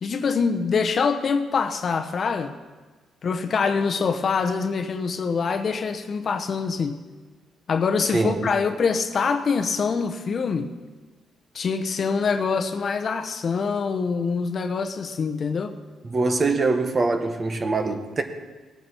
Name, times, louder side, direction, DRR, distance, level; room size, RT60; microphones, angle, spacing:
voice 1, 0.0-2.5 3.2-7.0 7.7-10.7 11.5-15.8, left 5 dB, 50° left, 0.9 m, -24 dB
voice 2, 8.1-8.5 16.1-18.2, right 3 dB, 35° right, 1.3 m, -23 dB
18.5 x 8.9 x 4.5 m
cardioid pair, 100°, 0 cm